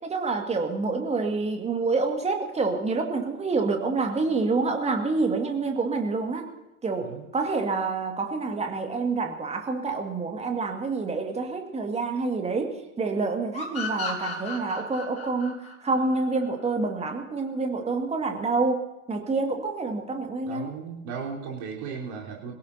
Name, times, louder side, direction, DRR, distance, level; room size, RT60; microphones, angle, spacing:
voice 1, 0.0-6.5 6.8-20.7, right 3 dB, 15° right, 3 dB, 2.1 m, -27 dB
sound 1, 13.5-16.9, left 4 dB, 15° left, 4.5 m, -35 dB
voice 2, 20.5-22.5, right 6 dB, 40° right, -2 dB, 4.3 m, -36 dB
25.5 x 17.0 x 2.9 m, 0.99 s
figure-of-eight pair, 85°, 45 cm